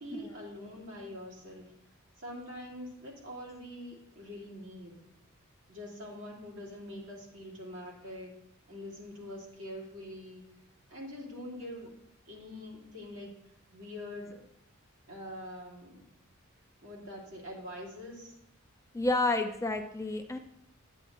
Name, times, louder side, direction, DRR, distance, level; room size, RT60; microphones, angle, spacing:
voice 1, 0.0-1.7 2.2-5.0 5.7-8.3 8.7-10.4 10.9-11.9 12.2-13.4 13.7-14.4 15.1-16.0 16.8-18.3, left 1 dB, 60° right, -4 dB, 2.9 m, -44 dB
voice 2, 18.9-20.4, left 2 dB, 15° left, 6 dB, 0.3 m, -29 dB
9.2 x 9.0 x 2.9 m, 0.79 s
head